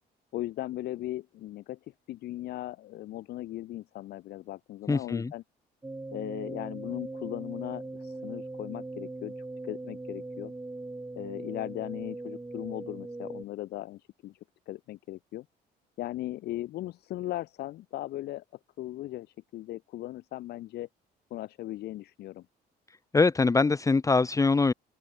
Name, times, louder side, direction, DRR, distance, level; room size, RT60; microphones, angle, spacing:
voice 1, 0.3-5.4 6.1-10.5 11.1-14.4 14.7-15.4 16.0-18.4 18.8-20.9 21.3-22.4, left 15 dB, 75° left, 3.3 m, -38 dB
voice 2, 4.9-5.3 23.1-24.7, left 4 dB, 20° left, 1.2 m, -23 dB
sound 1, 5.8-13.4, right 2 dB, 15° right, 4.5 m, -40 dB
open air
cardioid pair, 110°, 17 cm